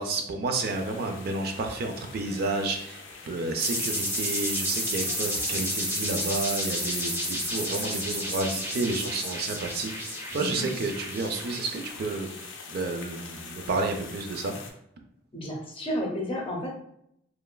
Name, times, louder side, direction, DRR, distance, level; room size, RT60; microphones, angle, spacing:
voice 1, 0.0-12.3 12.7-14.5, right 3 dB, 50° right, 3 dB, 0.4 m, -31 dB
sound 1, 0.6-14.7, left 5 dB, 70° left, 0.4 m, -44 dB
sound 2, 3.6-12.1, equal, 10° right, 0.6 m, -31 dB
voice 2, 10.3-10.6 15.3-16.7, equal, 30° left, -1 dB, 0.6 m, -32 dB
3.1 x 2.3 x 2.2 m, 0.73 s
head